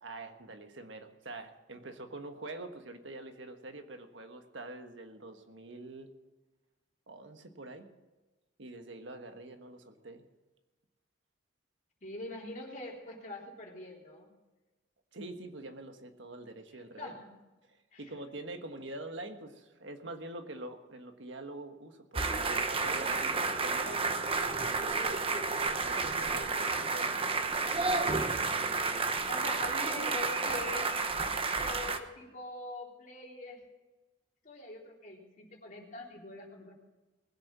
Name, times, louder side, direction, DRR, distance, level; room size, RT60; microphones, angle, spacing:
voice 1, 0.0-6.1 7.1-7.9 8.6-10.2 15.1-17.1 17.7-24.0 24.7-27.6, right 2 dB, 75° right, 6 dB, 1.5 m, -45 dB
voice 2, 12.0-14.3 17.0-17.3 17.9-18.0 29.3-31.1 31.6-33.6 34.4-36.7, left 2 dB, 40° left, -2 dB, 3.6 m, -43 dB
sound 1, 22.1-32.0, right 4 dB, 30° right, 0.9 m, -31 dB
20.0 x 8.3 x 6.2 m, 1.2 s
head